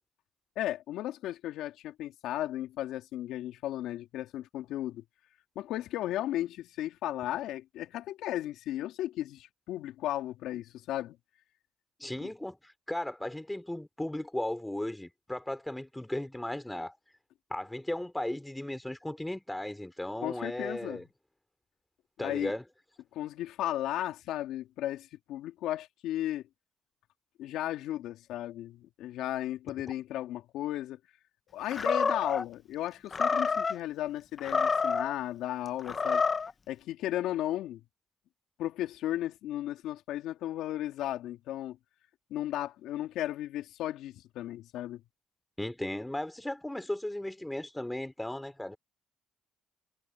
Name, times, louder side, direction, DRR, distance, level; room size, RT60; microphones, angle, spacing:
voice 1, 0.6-5.0 5.5-11.2 12.2-12.3 20.2-21.0 22.2-22.5 23.1-26.4 27.4-31.0 31.5-36.2 36.7-37.8 38.6-41.8 42.3-45.0, left 13 dB, 80° left, 2.8 m, -35 dB
voice 2, 12.0-16.9 17.5-21.1 22.2-22.6 45.6-48.8, left 1 dB, 10° left, 3.9 m, -36 dB
Animal, 31.7-32.4 33.1-33.8 34.4-35.1 35.8-36.5, left 5 dB, 40° left, 1.2 m, -28 dB
supercardioid pair, 60°, 0 cm